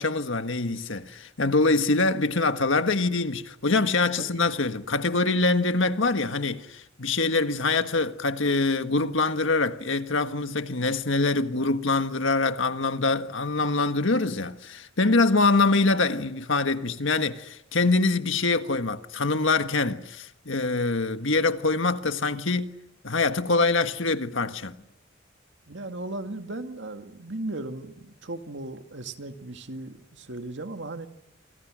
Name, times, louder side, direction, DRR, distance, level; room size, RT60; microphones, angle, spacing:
voice 1, 0.0-22.7 23.0-24.8, left 3 dB, 75° left, 1.6 m, -24 dB
voice 2, 25.7-31.1, right 2 dB, 65° right, 2.2 m, -36 dB
29.0 x 27.0 x 6.4 m
head